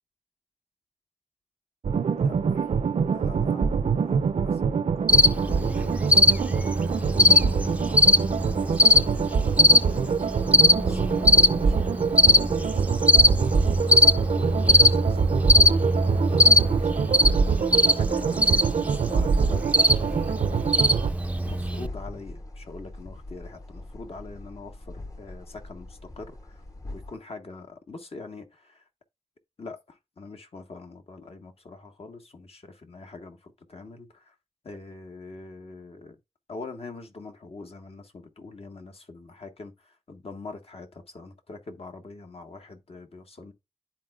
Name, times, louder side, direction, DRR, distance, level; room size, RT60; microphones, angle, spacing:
sound 1, 1.8-21.1, right 6 dB, 75° right, 0.6 m, -25 dB
voice 1, 2.2-2.7 3.1-12.9 13.2-19.7 20.0-20.8 21.4-26.6 26.9-28.8 29.6-34.3 34.6-36.2 36.5-43.5, left 3 dB, 60° left, 1.4 m, -44 dB
Cricket, 5.1-21.9, left 1 dB, 10° right, 0.5 m, -21 dB
sound 2, 19.4-27.2, left 2 dB, 30° left, 0.8 m, -41 dB
10.5 x 4.4 x 2.4 m
wide cardioid pair, 75°, 11 cm